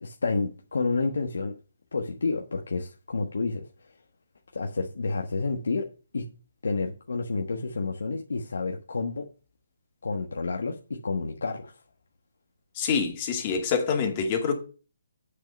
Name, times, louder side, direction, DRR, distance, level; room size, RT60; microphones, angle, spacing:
voice 1, 0.0-1.6 1.9-3.7 4.5-5.9 6.1-6.3 6.6-9.2 10.0-11.7, left 3 dB, 90° left, 1.3 m, -29 dB
voice 2, 12.7-14.5, left 6 dB, 30° left, 2.3 m, -26 dB
8.3 x 6.5 x 5.3 m
hypercardioid pair, 165°, 0 cm